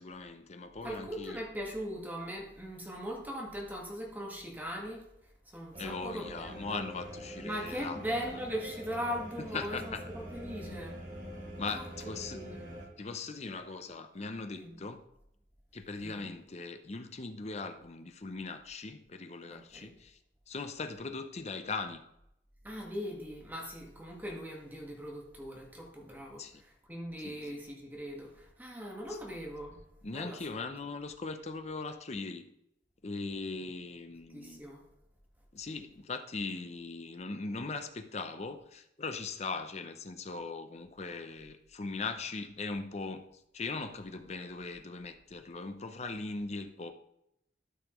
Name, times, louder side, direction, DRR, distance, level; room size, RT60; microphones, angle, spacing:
voice 1, 0.0-1.4 5.8-8.0 9.5-10.0 10.7-10.8 11.6-12.4 13.0-15.0 15.7-20.2 20.5-22.0 26.4-26.6 27.2-27.6 30.0-32.5 33.0-34.6 35.5-43.3 43.5-46.9, left 3 dB, 40° left, 7 dB, 0.6 m, -40 dB
voice 2, 0.8-5.0 5.5-6.8 7.4-10.9 11.7-11.8 12.3-12.8 14.5-14.8 16.0-16.3 19.5-19.9 22.6-29.8 30.1-30.7 34.3-34.8, equal, 10° right, -2 dB, 1.5 m, -40 dB
sound 1, 5.7-12.9, right 1 dB, 45° right, 2.2 m, -45 dB
12.5 x 5.7 x 3.0 m, 0.79 s
head